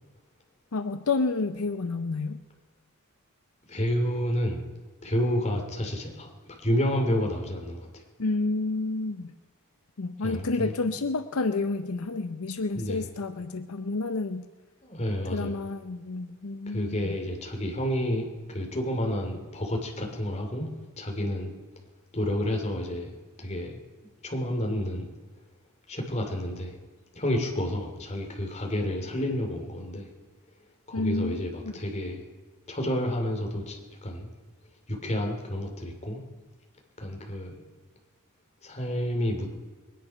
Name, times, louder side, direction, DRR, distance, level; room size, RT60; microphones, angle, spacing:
voice 1, 0.7-2.4 8.2-9.3 10.0-14.4 15.2-17.2 30.9-31.7, left 3 dB, 85° left, 9 dB, 0.7 m, -30 dB
voice 2, 3.7-4.6 5.0-8.0 10.2-10.7 12.7-13.0 14.8-15.5 16.7-20.7 21.0-21.5 22.1-23.1 23.4-23.7 24.2-25.1 25.9-26.7 27.1-30.1 30.9-32.2 32.7-34.3 34.9-36.2 37.0-37.5 38.6-39.5, equal, 30° left, 2 dB, 2.6 m, -30 dB
22.0 x 10.0 x 5.7 m, 1.3 s
head